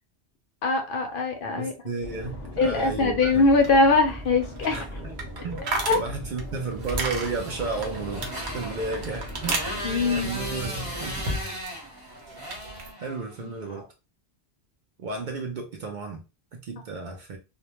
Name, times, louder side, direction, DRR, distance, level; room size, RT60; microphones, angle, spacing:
voice 1, 0.6-1.7 2.6-4.8 5.9-6.0 9.8-10.3, left 3 dB, 60° left, 0.7 m, -22 dB
voice 2, 1.5-3.4 4.7-5.1 5.4-5.6 5.9-11.2 13.0-13.9 15.0-16.2 16.5-17.4, right 3 dB, 60° right, 0.6 m, -33 dB
sound 1, 2.0-11.3, equal, 15° left, 0.9 m, -38 dB
sound 2, 3.3-11.8 12.1-12.9, right 3 dB, 90° right, 0.9 m, -35 dB
Motorcycle, 6.8-13.5, equal, 25° right, 0.9 m, -37 dB
2.2 x 2.1 x 2.9 m
omnidirectional pair, 1.1 m